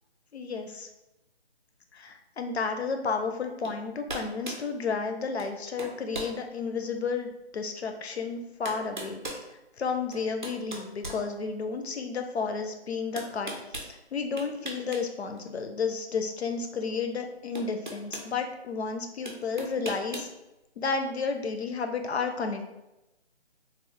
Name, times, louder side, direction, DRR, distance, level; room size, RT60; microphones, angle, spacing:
voice 1, 0.3-0.9 1.9-9.2 9.5-20.3 20.8-22.6, left 5 dB, 70° left, 5 dB, 0.6 m, -32 dB
sound 1, 3.6-3.8 4.1-4.7 5.4-5.5 5.8-6.4 6.9-7.0 8.1-8.2 8.7-9.5 10.1-11.8 13.2-13.9 14.4-15.0 15.3-15.5 16.9-17.0 17.6-18.3 19.3-20.3, right 1 dB, 45° right, 0.5 m, -38 dB
3.1 x 2.0 x 3.7 m, 0.93 s
hypercardioid pair, 180°, 34 cm